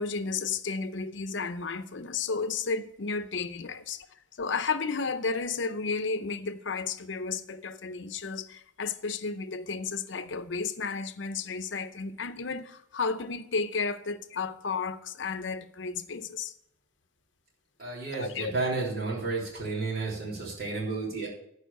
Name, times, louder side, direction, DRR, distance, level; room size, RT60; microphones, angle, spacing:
voice 1, 0.0-16.5 18.1-18.5, left 4 dB, 65° left, 0.7 m, -33 dB
voice 2, 17.8-21.3, right 3 dB, 55° right, 3.4 m, -32 dB
11.0 x 4.9 x 8.0 m
head